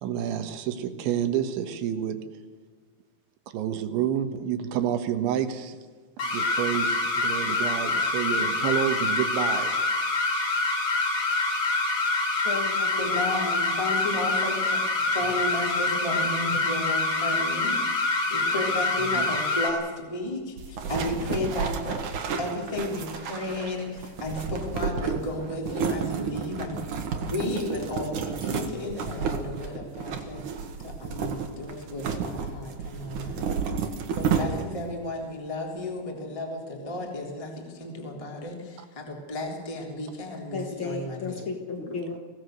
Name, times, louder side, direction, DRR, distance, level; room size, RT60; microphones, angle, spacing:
voice 1, 0.0-2.3 3.5-5.8 6.2-9.8 19.0-19.3, right 10 dB, 85° right, 8 dB, 3.8 m, -29 dB
sound 1, 6.2-19.7, left 2 dB, 35° left, 3.7 m, -26 dB
voice 2, 12.4-13.0 40.5-42.2, left 4 dB, 80° left, 4 dB, 1.1 m, -33 dB
voice 3, 13.0-14.8 15.1-22.0 22.4-30.4 30.8-41.5, left 1 dB, 10° left, 0 dB, 2.9 m, -33 dB
sound 2, 20.6-34.9, right 6 dB, 55° right, 2.7 m, -31 dB
24.0 x 17.5 x 6.6 m, 1.5 s
omnidirectional pair, 5.2 m